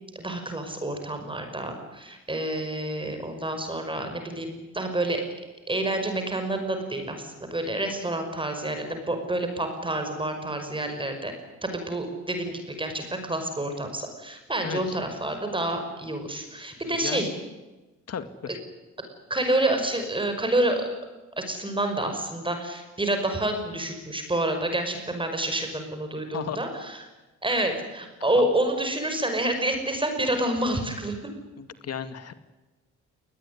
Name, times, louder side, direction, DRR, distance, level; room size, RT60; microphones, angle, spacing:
voice 1, 0.2-5.2 5.7-11.3 11.6-17.3 19.3-20.8 21.4-27.0 27.4-31.2, right 1 dB, 15° right, 6 dB, 5.6 m, -28 dB
voice 2, 14.6-15.0 16.8-17.3 18.1-18.6 26.3-26.6 31.6-32.3, left 7 dB, 55° left, 11 dB, 2.2 m, -35 dB
21.5 x 20.0 x 9.9 m, 1.1 s
cardioid pair, 90°, 30 cm